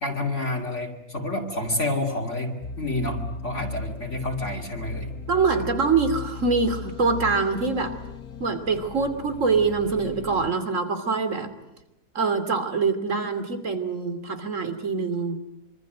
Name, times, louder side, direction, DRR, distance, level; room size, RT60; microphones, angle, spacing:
voice 1, 0.0-5.1, left 1 dB, 45° left, 0 dB, 2.9 m, -29 dB
sound 1, 2.6-10.5, left 3 dB, 70° left, 1.8 m, -37 dB
voice 2, 5.3-8.0 8.4-11.5 12.1-15.4, right 4 dB, 50° right, 10 dB, 3.1 m, -24 dB
26.0 x 24.5 x 9.2 m, 0.88 s
omnidirectional pair, 1.7 m